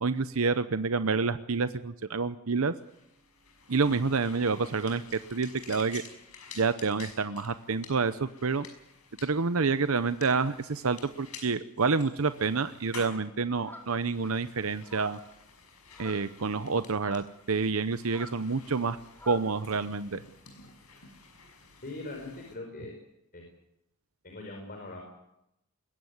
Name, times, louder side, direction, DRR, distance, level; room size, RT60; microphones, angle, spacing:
voice 1, 0.0-2.7 3.7-6.0 6.5-8.7 9.2-15.2 16.0-19.0 19.3-20.2, right 4 dB, 70° right, 11 dB, 0.8 m, -28 dB
sound 1, 2.8-22.5, left 5 dB, 90° left, 6.0 m, -51 dB
sound 2, 13.7-14.1 14.8-15.3 15.9-16.3 16.9-17.3 18.0-19.5, left 1 dB, 10° left, 4.4 m, -47 dB
voice 2, 21.8-22.9 23.3-23.5 24.2-25.0, left 2 dB, 45° left, 1 dB, 4.8 m, -41 dB
21.5 x 16.5 x 9.6 m, 0.83 s
head